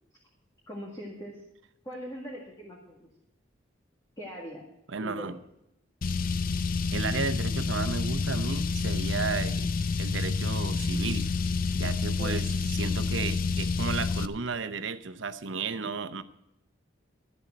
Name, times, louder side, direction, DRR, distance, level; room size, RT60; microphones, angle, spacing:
voice 1, 0.7-1.4 1.8-3.1 4.2-4.7 5.0-5.3 12.2-12.5, equal, 20° left, -3 dB, 1.9 m, -41 dB
voice 2, 4.9-5.4 6.9-9.7 10.0-11.3 11.7-16.2, right 4 dB, 75° right, 11 dB, 0.8 m, -33 dB
Car, 6.0-14.3, left 4 dB, 50° left, 0.5 m, -28 dB
13.0 x 7.0 x 7.9 m, 0.82 s
head